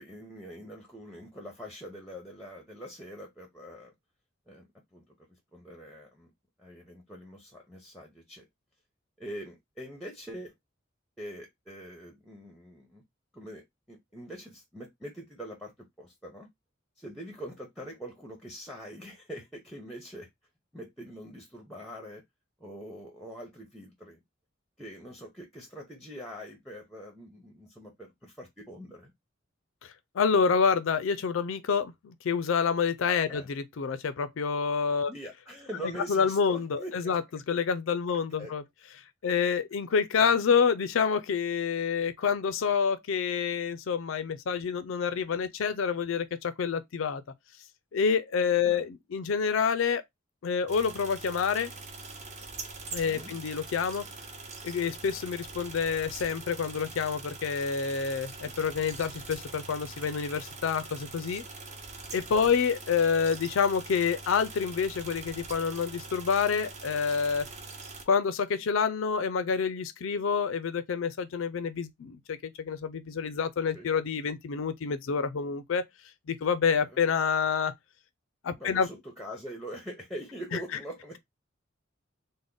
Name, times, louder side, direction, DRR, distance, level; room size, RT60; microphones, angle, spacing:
voice 1, 0.0-3.9 4.5-4.7 4.9-5.0 5.5-6.3 6.6-8.4 9.2-10.5 11.2-13.0 13.3-16.5 17.0-20.3 20.7-22.2 22.6-24.2 24.8-29.1 33.3-33.5 35.1-37.2 38.4-38.5 40.2-40.4 48.6-48.8 53.0-53.3 62.3-62.6 73.7-73.9 76.8-77.0 78.6-81.2, equal, ahead, 0.7 m, -43 dB
voice 2, 29.8-35.1 35.8-38.6 39.2-47.2 47.9-50.0 50.4-51.7 52.9-54.1 54.6-61.4 62.1-67.5 68.1-75.8 76.3-77.7 78.4-78.9 80.5-80.6, left 6 dB, 80° left, 0.4 m, -28 dB
sound 1, 50.7-68.0, right 3 dB, 35° right, 0.7 m, -43 dB
3.5 x 2.1 x 3.7 m
head